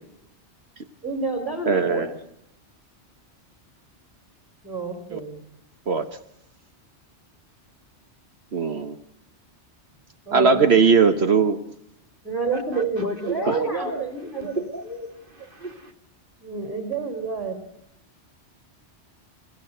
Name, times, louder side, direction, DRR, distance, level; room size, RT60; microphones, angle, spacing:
voice 1, 1.0-2.1 4.6-5.4 10.3-10.6 12.2-14.6 16.4-17.6, right 4 dB, ahead, 5 dB, 3.1 m, -29 dB
voice 2, 1.7-2.1 5.1-5.2 5.9-6.1 8.5-8.9 10.3-11.6 13.5-13.6, right 5 dB, 65° right, 8 dB, 1.4 m, -19 dB
voice 3, 12.7-15.9, right 1 dB, 50° right, 5 dB, 2.6 m, -32 dB
29.5 x 16.0 x 7.8 m, 0.81 s
omnidirectional pair, 1.2 m